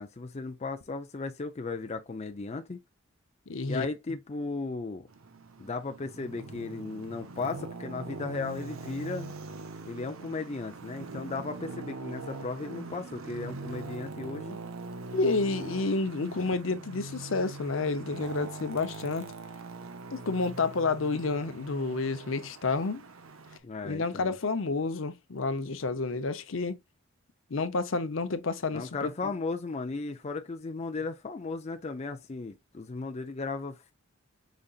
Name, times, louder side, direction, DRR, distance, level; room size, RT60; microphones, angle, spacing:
voice 1, 0.0-2.8 3.7-5.1 5.6-9.3 9.9-14.6 23.6-24.3 28.7-33.9, left 3 dB, 30° left, 0.5 m, -36 dB
voice 2, 3.5-4.2 15.1-19.3 20.1-23.1 23.8-26.8 27.5-29.3, left 3 dB, 70° left, 0.7 m, -30 dB
Traffic noise roadway noise, 5.1-23.6, right 3 dB, 85° right, 0.8 m, -42 dB
5.1 x 4.0 x 2.3 m
head